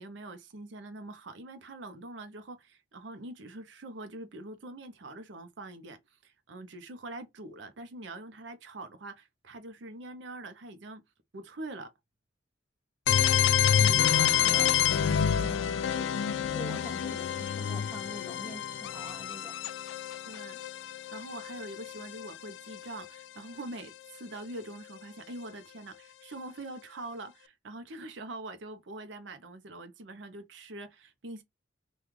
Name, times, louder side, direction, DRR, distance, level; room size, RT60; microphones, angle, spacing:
voice 1, 0.0-11.0 11.3-11.9 20.2-20.6 21.1-31.4, right 2 dB, 70° right, 0.6 m, -44 dB
sound 1, 13.1-22.8, left 9 dB, 75° left, 0.3 m, -28 dB
voice 2, 13.7-16.2 16.5-19.6, equal, 5° right, 0.4 m, -45 dB
3.0 x 2.3 x 3.5 m
head